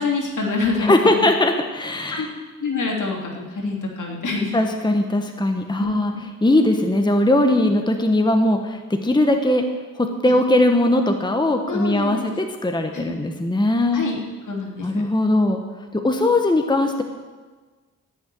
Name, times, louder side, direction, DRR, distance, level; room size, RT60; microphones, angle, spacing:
voice 1, 0.0-1.3 2.1-2.3 2.6-4.6 5.8-6.2 10.2-10.4 11.7-12.3 12.9-13.1 13.9-15.0, left 4 dB, 70° left, -1 dB, 3.2 m, -26 dB
voice 2, 0.8-2.3 4.5-6.1 6.4-9.6 10.0-14.1 14.8-15.6 15.9-17.0, left 1 dB, 15° left, 4 dB, 1.2 m, -19 dB
16.0 x 6.4 x 9.2 m, 1.3 s
cardioid pair, 85°, 32 cm